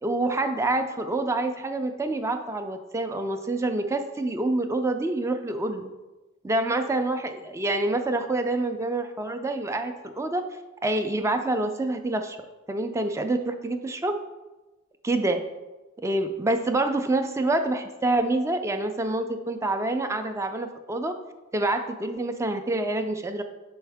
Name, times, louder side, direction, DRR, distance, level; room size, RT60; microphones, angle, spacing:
voice 1, 0.0-5.9 6.4-10.4 10.8-12.4 12.7-14.1 15.0-15.4 16.0-21.1 21.5-23.4, right 2 dB, 15° right, 7 dB, 0.3 m, -27 dB
6.2 x 4.6 x 3.4 m, 1.1 s
head